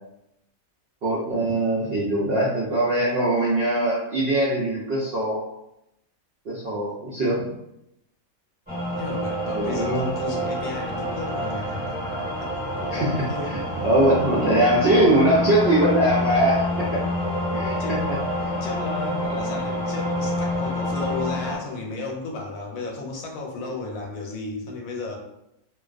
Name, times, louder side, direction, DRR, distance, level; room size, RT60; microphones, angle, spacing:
voice 1, 1.0-5.4 6.5-7.4 9.5-10.1 12.9-13.1 13.8-16.9 17.5-18.2, right 1 dB, 65° right, -7 dB, 0.6 m, -21 dB
sound 1, 8.7-21.6, left 1 dB, 5° right, 1.1 m, -27 dB
voice 2, 9.0-11.8 12.4-13.6 17.6-18.1 18.4-25.2, left 3 dB, 75° left, 0 dB, 1.0 m, -34 dB
2.4 x 2.2 x 2.3 m, 0.84 s
omnidirectional pair, 1.5 m